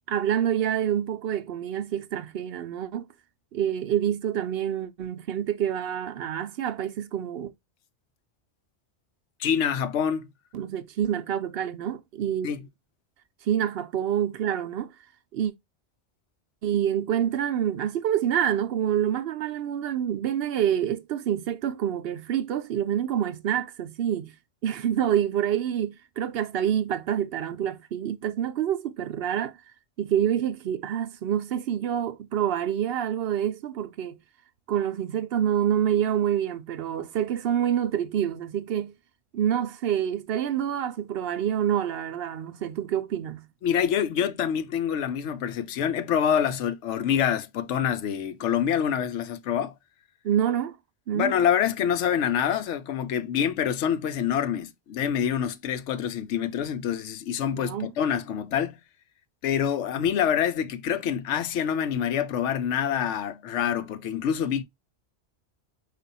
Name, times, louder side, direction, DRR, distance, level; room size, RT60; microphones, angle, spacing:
voice 1, 0.1-3.1 3.5-7.5 10.5-12.5 13.4-14.9 15.3-15.5 16.6-24.3 24.6-29.6 30.0-34.2 34.7-38.9 39.3-43.5 50.2-50.8 51.1-51.4 57.5-57.9, right 10 dB, 65° right, 0.7 m, -27 dB
voice 2, 9.4-10.3 12.4-12.6 43.6-49.7 51.1-58.8 59.4-64.6, left 8 dB, 85° left, 0.9 m, -26 dB
5.0 x 2.4 x 4.0 m
omnidirectional pair, 1.2 m